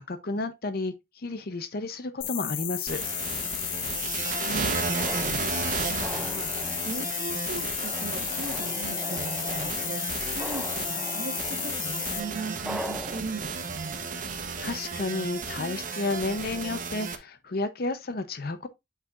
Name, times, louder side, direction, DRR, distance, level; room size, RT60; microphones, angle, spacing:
voice 1, 0.0-3.0 14.6-18.7, left 2 dB, 50° left, 0.6 m, -32 dB
sound 1, 2.2-12.2, left 12 dB, 85° left, 0.9 m, -33 dB
sound 2, 2.9-17.2, right 5 dB, 45° right, 0.9 m, -34 dB
sound 3, 4.2-13.2, equal, 5° right, 0.4 m, -41 dB
voice 2, 4.2-5.5 5.8-14.0, right 3 dB, 70° right, 1.2 m, -39 dB
8.4 x 4.9 x 2.4 m
head